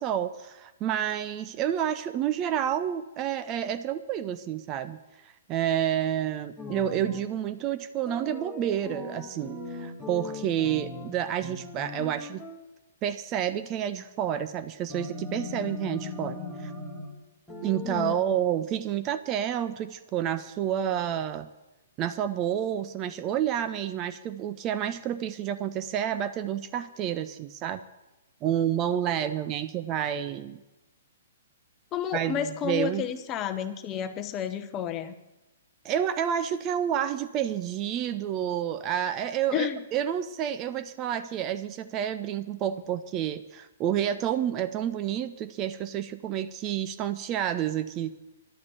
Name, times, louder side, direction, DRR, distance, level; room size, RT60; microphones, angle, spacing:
voice 1, 0.0-5.0 5.2-12.4 13.0-16.7 17.6-21.5 22.0-27.8 28.4-30.6 32.1-33.1 35.8-48.1, right 10 dB, 25° right, 11 dB, 0.6 m, -29 dB
sound 1, 6.6-7.3 8.1-11.2 11.4-12.6 14.9-17.1 17.5-18.2, left 3 dB, 5° left, 1.8 m, -39 dB
voice 2, 17.8-18.2 31.9-35.1 39.5-39.8, left 9 dB, 25° left, 9 dB, 0.9 m, -31 dB
11.5 x 8.4 x 8.8 m, 1.0 s
figure-of-eight pair, 115°, 0 cm